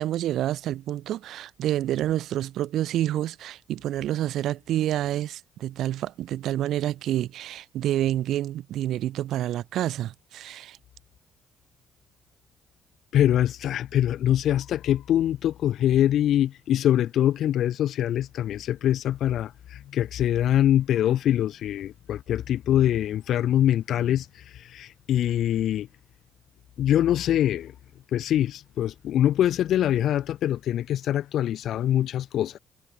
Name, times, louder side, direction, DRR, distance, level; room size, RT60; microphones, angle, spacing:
voice 1, 0.0-10.8, right 12 dB, 80° right, 2.0 m, -28 dB
voice 2, 13.1-24.3 24.7-25.9 26.8-27.7 28.1-32.6, left 11 dB, 75° left, 0.6 m, -24 dB
cardioid pair, 90°, 0 cm